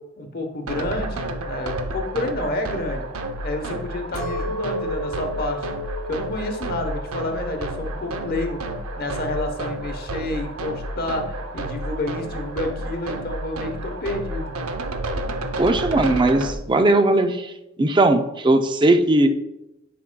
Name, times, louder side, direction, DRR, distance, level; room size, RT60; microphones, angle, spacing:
voice 1, 0.2-3.0 3.4-5.6 6.1-8.6 9.0-14.5, left 1 dB, 45° left, 4 dB, 1.0 m, -29 dB
sound 1, 0.7-16.5, right 1 dB, 75° right, 0.6 m, -31 dB
Chink clink, 4.2-8.5 8.9-9.5, left 1 dB, 80° left, 1.0 m, -34 dB
voice 2, 15.6-17.5 17.8-19.3, right 2 dB, 20° right, 7 dB, 0.4 m, -18 dB
9.9 x 5.4 x 2.2 m, 0.94 s
head